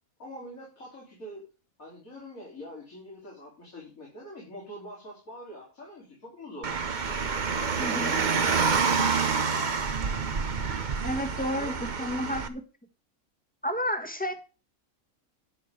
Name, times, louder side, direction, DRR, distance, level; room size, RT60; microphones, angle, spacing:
voice 1, 0.2-1.4 1.8-6.7 11.3-12.3, equal, 85° left, -4 dB, 4.2 m, -44 dB
Car, 6.6-12.5, right 5 dB, 40° right, 1.0 m, -27 dB
voice 2, 7.8-8.2 11.0-12.6 13.6-14.3, equal, 5° left, 6 dB, 1.4 m, -31 dB
11.0 x 5.9 x 6.6 m, 0.34 s
omnidirectional pair, 1.4 m